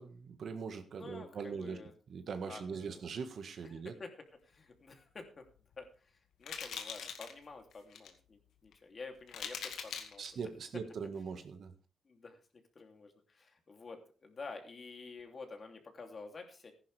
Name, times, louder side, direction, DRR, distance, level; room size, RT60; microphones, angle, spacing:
voice 1, 0.0-1.8 2.1-3.9 10.2-11.7, right 5 dB, 65° right, 8 dB, 1.7 m, -41 dB
voice 2, 0.9-1.9 2.4-3.0 3.7-4.1 4.4-5.4 5.8-10.2 12.0-12.4 12.7-16.7, left 4 dB, 45° left, 4 dB, 3.0 m, -50 dB
sound 1, 5.5-5.7 6.4-7.3 7.7-8.1 8.7-8.8 9.3-10.3, left 7 dB, 80° left, 2.0 m, -42 dB
15.0 x 11.0 x 3.5 m, 0.39 s
cardioid pair, 80°, 0 cm